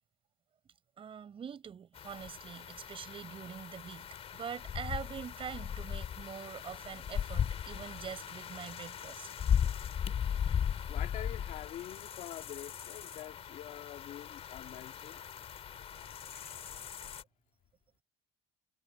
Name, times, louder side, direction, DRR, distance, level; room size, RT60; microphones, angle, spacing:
voice 1, 1.0-9.3, right 7 dB, 40° right, 8.0 m, -44 dB
sound 1, 1.9-17.2, left 8 dB, 45° left, 3.3 m, -37 dB
voice 2, 10.9-15.2 15.9-16.6, left 12 dB, 65° left, 2.0 m, -46 dB
cardioid pair, 110°, 14 cm